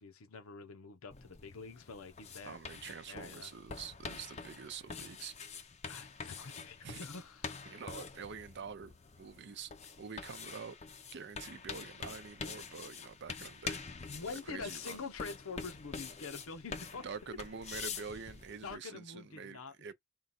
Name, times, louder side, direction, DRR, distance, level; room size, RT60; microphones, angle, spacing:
voice 1, 0.0-2.6 3.1-3.5 5.9-7.5 14.0-17.1 18.6-19.9, left 4 dB, 85° left, 0.8 m, -46 dB
sound 1, 1.1-18.7, left 5 dB, 30° left, 0.5 m, -46 dB
voice 2, 2.4-5.3 6.8-7.0 7.7-9.7 10.0-10.8 11.1-13.8 14.5-15.0 16.9-19.9, right 5 dB, 55° right, 0.5 m, -46 dB
3.7 x 2.3 x 4.2 m
head